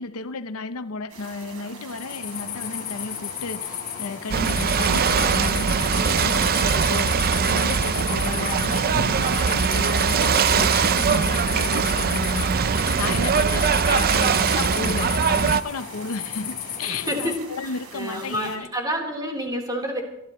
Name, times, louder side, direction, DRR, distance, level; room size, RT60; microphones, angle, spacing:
voice 1, 0.0-18.7, left 4 dB, 75° left, 0.7 m, -33 dB
sound 1, 1.1-18.6, right 4 dB, 75° right, 3.4 m, -43 dB
sound 2, 1.9-17.4, left 11 dB, 45° left, 0.8 m, -34 dB
Ocean / Boat Water vehicle, 4.3-15.6, right 6 dB, 45° right, 0.5 m, -21 dB
voice 2, 16.9-17.3 17.9-20.0, equal, 20° right, 3.7 m, -29 dB
27.0 x 12.5 x 3.1 m
head